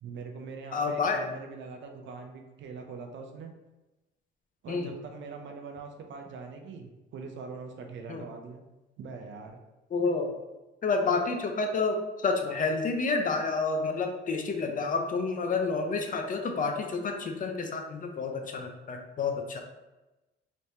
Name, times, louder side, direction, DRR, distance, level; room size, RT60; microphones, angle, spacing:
voice 1, 0.0-3.5 4.6-8.6 9.0-9.6, right 4 dB, 70° right, 4 dB, 0.6 m, -42 dB
voice 2, 0.7-1.3 4.7-4.9 8.1-8.2 9.9-10.3 10.8-19.6, left 4 dB, 45° left, 4 dB, 0.6 m, -29 dB
3.3 x 3.2 x 2.8 m, 1.1 s
cardioid pair, 90°, 20 cm